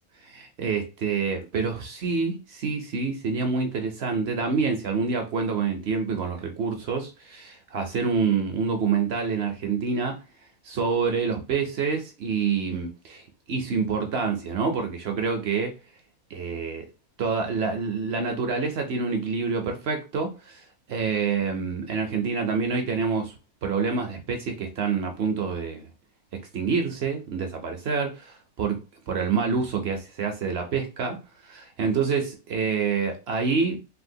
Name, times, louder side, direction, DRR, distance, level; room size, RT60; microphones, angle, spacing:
voice 1, 0.2-10.2 10.6-15.7 16.3-16.9 17.2-20.6 20.9-23.3 23.6-25.9 26.5-28.8 29.1-31.2 31.5-33.8, right 5 dB, 60° right, 0.6 m, -27 dB
3.5 x 2.5 x 2.6 m
omnidirectional pair, 1.6 m